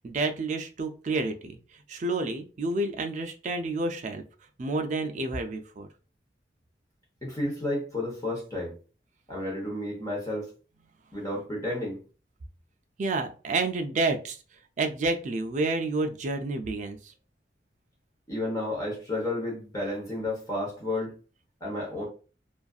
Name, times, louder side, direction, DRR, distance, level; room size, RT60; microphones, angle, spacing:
voice 1, 0.0-1.6 1.9-4.2 4.6-5.9 13.0-14.4 14.8-17.1, right 3 dB, 40° right, 0.4 m, -29 dB
voice 2, 7.2-8.7 9.3-10.5 11.1-12.0 18.3-21.2 21.6-22.0, left 1 dB, 20° left, 0.9 m, -31 dB
2.5 x 2.4 x 2.3 m
head